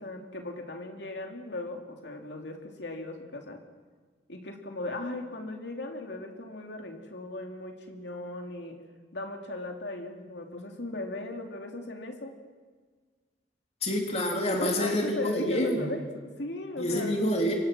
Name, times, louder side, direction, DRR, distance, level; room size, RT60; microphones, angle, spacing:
voice 1, 0.0-3.6 4.3-8.8 9.1-12.3 14.6-17.2, left 2 dB, 80° left, 3 dB, 2.8 m, -37 dB
voice 2, 13.8-15.9 16.8-17.5, left 1 dB, 35° left, 1 dB, 3.2 m, -27 dB
27.5 x 24.5 x 6.2 m, 1.5 s
head